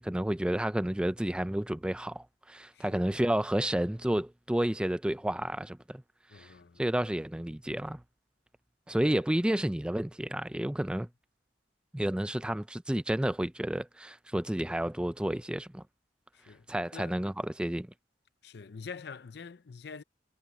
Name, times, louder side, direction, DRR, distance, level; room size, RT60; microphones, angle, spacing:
voice 1, 0.0-6.0 6.3-6.5 6.8-8.0 8.9-11.1 11.9-15.8 16.7-17.9, right 1 dB, 5° right, 0.3 m, -31 dB
voice 2, 2.7-3.1 6.3-6.9 9.0-9.1 16.3-16.6 16.9-17.2 18.4-20.0, left 5 dB, 60° left, 0.5 m, -45 dB
head